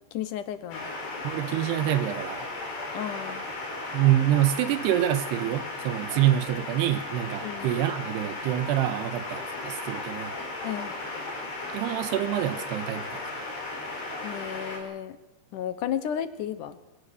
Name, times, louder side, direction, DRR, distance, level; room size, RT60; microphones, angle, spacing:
voice 1, 0.1-0.9 2.9-3.5 7.4-7.7 10.6-11.0 14.2-15.2 15.5-16.8, left 10 dB, 70° left, 13 dB, 2.0 m, -33 dB
sound 1, 0.7-14.8, left 2 dB, 85° left, 7.8 m, -36 dB
voice 2, 1.2-2.5 3.9-10.3 11.7-13.2, right 12 dB, 85° right, 11 dB, 3.1 m, -26 dB
27.5 x 18.0 x 6.8 m, 0.94 s
omnidirectional pair, 4.7 m